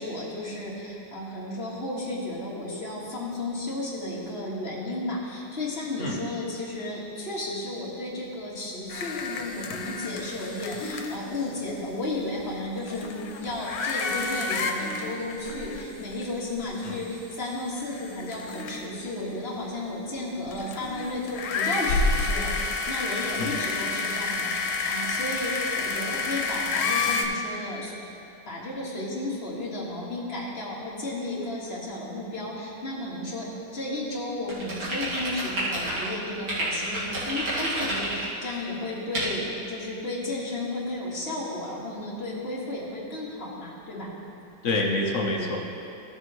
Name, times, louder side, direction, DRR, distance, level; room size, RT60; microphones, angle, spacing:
voice 1, 0.0-27.9 28.5-33.5 33.7-44.1, left 2 dB, 30° left, -6 dB, 1.8 m, -33 dB
sound 1, 8.9-11.5 12.4-12.5 12.8-16.2 16.6-16.7 17.4-19.0 20.5-27.2, left 4 dB, 85° left, 1.6 m, -29 dB
sound 2, 34.5-36.1 36.5-38.3 39.1-39.3, right 1 dB, 90° right, 2.9 m, -29 dB
voice 2, 44.6-45.6, left 2 dB, 55° left, -1 dB, 0.9 m, -26 dB
15.0 x 6.7 x 3.1 m, 2.7 s
omnidirectional pair, 2.2 m